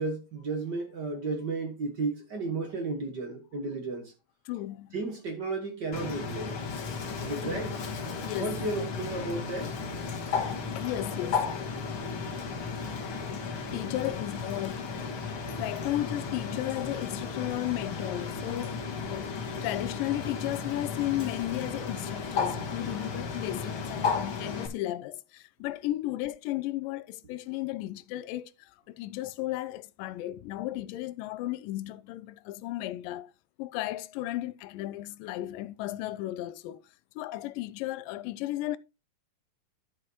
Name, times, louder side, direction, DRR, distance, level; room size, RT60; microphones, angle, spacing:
voice 1, 0.0-4.1 4.9-6.5 7.2-7.7 8.4-9.7, right 3 dB, 50° right, 1.3 m, -33 dB
voice 2, 4.5-5.0 7.4-7.7 8.2-8.6 10.5-11.5 13.7-15.2 15.6-33.3 33.6-36.8 37.2-38.8, left 15 dB, 80° left, 2.2 m, -34 dB
Bird, 5.9-24.7, left 5 dB, 50° left, 1.8 m, -34 dB
12.0 x 6.2 x 3.0 m
omnidirectional pair, 4.0 m